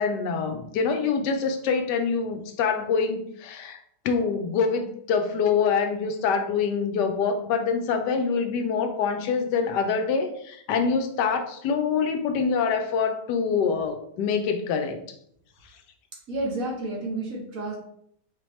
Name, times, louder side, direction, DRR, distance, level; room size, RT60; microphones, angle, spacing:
voice 1, 0.0-3.8 4.0-15.0, left 5 dB, 90° left, 6 dB, 1.2 m, -25 dB
voice 2, 16.3-17.8, right 2 dB, 55° right, -2 dB, 1.4 m, -30 dB
4.2 x 3.0 x 3.1 m, 0.69 s
omnidirectional pair, 1.8 m